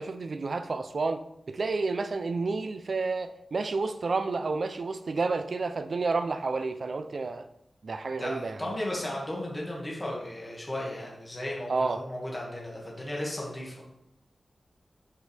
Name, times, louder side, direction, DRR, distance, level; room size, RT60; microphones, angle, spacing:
voice 1, 0.0-7.5 7.8-8.7 11.7-12.0, right 3 dB, 60° right, 9 dB, 0.6 m, -30 dB
voice 2, 8.0-13.8, left 1 dB, 15° left, -4 dB, 2.1 m, -35 dB
8.2 x 7.7 x 3.5 m, 0.82 s
wide cardioid pair, 115°, 0 cm